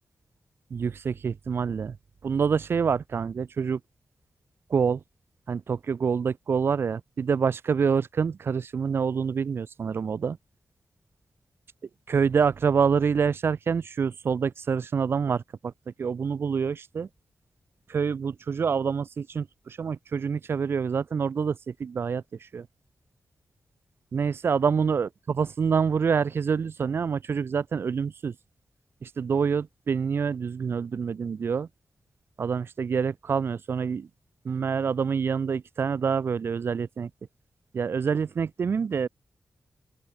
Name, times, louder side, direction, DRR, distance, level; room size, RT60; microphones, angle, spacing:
voice 1, 0.7-2.0 2.2-3.8 4.7-5.0 5.5-10.4 12.1-15.7 16.0-17.1 17.9-22.7 24.1-28.3 29.0-31.7 32.4-34.1 34.4-37.1 37.7-39.1, right 6 dB, 65° right, 2.5 m, -26 dB
open air
wide cardioid pair, 115°, 4 cm